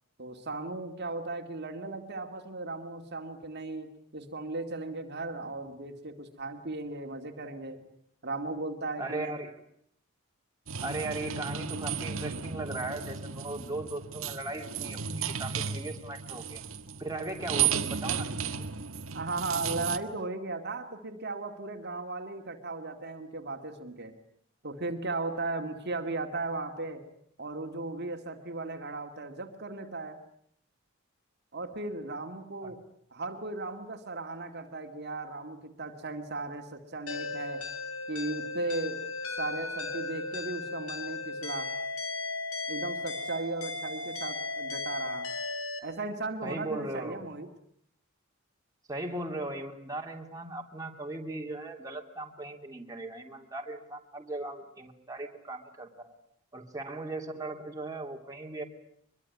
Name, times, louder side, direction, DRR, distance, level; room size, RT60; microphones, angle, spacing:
voice 1, 0.2-7.8 8.2-9.3 19.1-24.1 24.6-27.1 27.4-30.2 31.5-32.8 33.1-37.6 38.1-39.1 39.4-41.7 42.7-45.3 45.8-47.5, right 2 dB, 50° right, 5 dB, 2.3 m, -36 dB
voice 2, 9.0-9.6 10.8-16.6 17.0-18.6 32.6-32.7 46.4-47.2 48.9-56.1 56.5-58.6, right 2 dB, 15° right, 2 dB, 2.7 m, -38 dB
sound 1, 10.7-20.0, right 7 dB, 75° right, 1.6 m, -34 dB
sound 2, 37.1-45.8, left 3 dB, 90° left, 5.0 m, -36 dB
24.0 x 22.5 x 9.7 m, 0.68 s
head